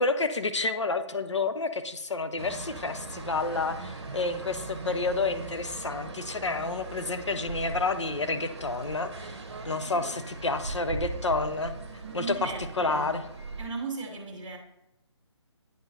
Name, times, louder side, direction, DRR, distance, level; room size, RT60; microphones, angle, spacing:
voice 1, 0.0-9.3 9.6-11.7 12.1-12.5 12.8-13.2, left 3 dB, 70° left, 9 dB, 0.6 m, -29 dB
sound 1, 2.4-13.7, right 3 dB, 60° right, 1.0 m, -39 dB
voice 2, 11.9-13.2 13.6-14.6, right 4 dB, 10° right, -10 dB, 1.2 m, -37 dB
9.3 x 5.0 x 2.8 m, 0.87 s
figure-of-eight pair, 145°, 16 cm